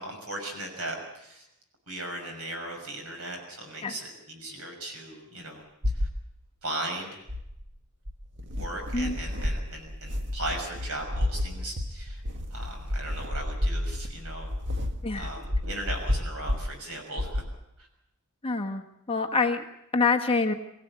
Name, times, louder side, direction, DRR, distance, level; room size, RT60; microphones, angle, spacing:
voice 1, 0.0-1.5 1.9-6.1 6.6-7.2 8.5-12.2 12.5-14.5 15.1-17.4 17.8-17.9, right 1 dB, 70° right, 3 dB, 6.3 m, -37 dB
sound 1, 5.8-6.2 7.3-7.6 8.0-16.7 17.2-17.5, left 1 dB, 55° right, 1.7 m, -31 dB
voice 2, 18.4-18.8 19.1-19.6 19.9-20.5, left 4 dB, 25° left, 5 dB, 1.4 m, -25 dB
22.5 x 16.0 x 8.3 m, 0.83 s
head